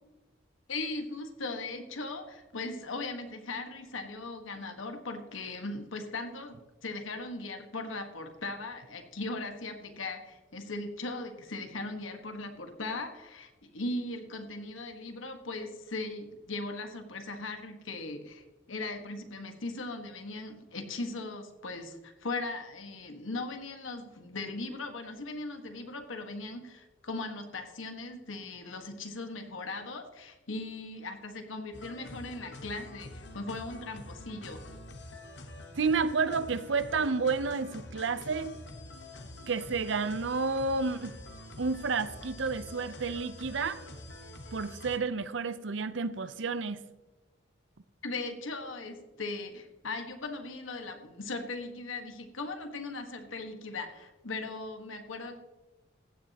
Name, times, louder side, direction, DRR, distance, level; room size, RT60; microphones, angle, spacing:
voice 1, 0.7-34.7 48.0-55.4, left 2 dB, 90° left, 5 dB, 1.5 m, -39 dB
sound 1, 31.7-45.0, left 1 dB, 60° left, 1.2 m, -46 dB
voice 2, 35.8-38.6 39.5-41.1 41.6-43.8 44.5-46.8, right 4 dB, 70° right, 13 dB, 0.7 m, -30 dB
15.5 x 10.0 x 2.9 m, 1.1 s
head